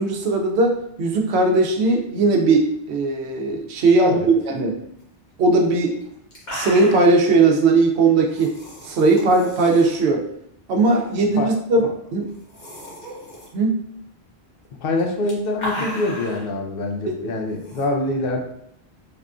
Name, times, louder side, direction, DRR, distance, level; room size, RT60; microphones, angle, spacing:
voice 1, 0.0-4.7 5.4-6.0 6.5-8.5 8.8-10.2 10.7-12.3 13.5-13.8 17.1-17.2, right 3 dB, 80° right, 2 dB, 0.8 m, -18 dB
sound 1, 5.6-5.7 6.0-6.1 6.3-7.2 8.3-10.0 10.9-11.2 11.5-11.6 12.3-13.5 14.9-16.5 17.6-17.8, equal, 45° left, 1.1 m, -35 dB
voice 2, 14.8-18.4, left 2 dB, 65° left, 2 dB, 0.7 m, -25 dB
3.4 x 2.3 x 2.4 m, 0.72 s
omnidirectional pair, 1.1 m